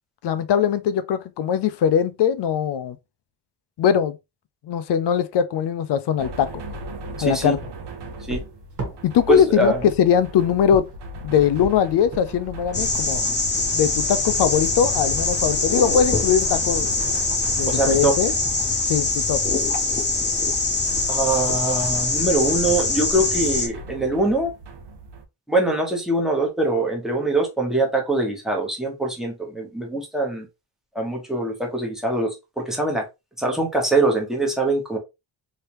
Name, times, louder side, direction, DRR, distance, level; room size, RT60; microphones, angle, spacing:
voice 1, 0.2-3.0 3.8-4.2 4.6-6.6 7.2-7.6 9.0-10.9 11.2-13.2 13.7-16.9 17.6-18.3 18.9-19.4, left 8 dB, 75° left, 0.5 m, -21 dB
sound 1, 6.2-25.2, right 1 dB, 70° right, 0.8 m, -38 dB
voice 2, 7.2-7.6 8.3-8.4 9.3-9.8 17.7-18.2 21.1-24.5 25.5-30.5 30.9-33.0 33.4-35.0, right 2 dB, ahead, 1.0 m, -23 dB
sound 2, 8.1-18.6 19.5-19.9 20.2-21.7, right 1 dB, 45° right, 1.3 m, -40 dB
sound 3, 12.7-23.7, left 3 dB, 25° left, 0.7 m, -23 dB
3.3 x 2.8 x 3.0 m
wide cardioid pair, 165°, 41 cm